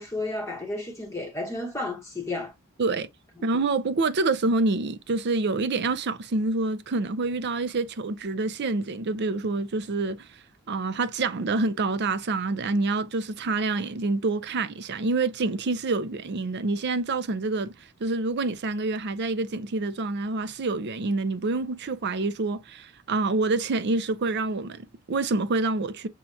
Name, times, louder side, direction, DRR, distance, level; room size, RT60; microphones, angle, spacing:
voice 1, 0.0-2.5, left 2 dB, 15° left, 0.8 m, -32 dB
voice 2, 3.4-10.3 10.7-17.7 18.0-26.1, right 3 dB, 55° right, 0.5 m, -27 dB
6.9 x 2.8 x 2.3 m
head